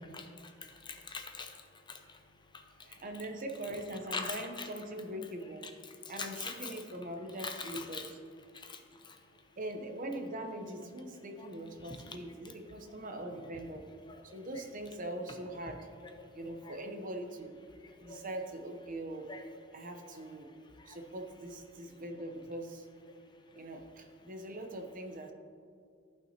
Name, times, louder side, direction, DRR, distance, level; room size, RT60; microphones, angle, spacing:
voice 1, 0.8-1.6 1.9-2.2 3.1-3.2 3.6-4.7 5.6-5.9 6.2-6.8 7.4-8.1 8.5-8.8 9.0-9.2 11.8-12.2 16.7-16.8 18.1-18.2 19.3-19.5, left 4 dB, 25° left, 4 dB, 0.6 m, -42 dB
voice 2, 2.8-5.7 6.1-8.2 9.6-13.9 14.2-15.9 16.3-17.6 17.8-19.3 19.7-20.5 20.9-22.9 23.5-25.3, right 1 dB, 45° right, 5 dB, 0.8 m, -42 dB
14.5 x 5.7 x 2.8 m, 2.4 s
head